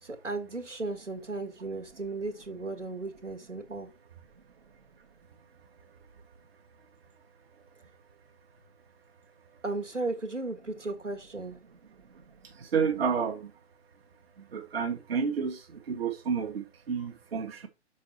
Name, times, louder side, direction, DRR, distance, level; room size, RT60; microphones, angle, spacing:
voice 1, 0.0-3.9 9.6-11.6, right 3 dB, 90° right, 1.6 m, -35 dB
voice 2, 12.7-13.4 14.5-15.6 15.9-17.7, right 6 dB, 55° right, 1.1 m, -30 dB
6.2 x 4.1 x 4.4 m
figure-of-eight pair, 125°, 35 cm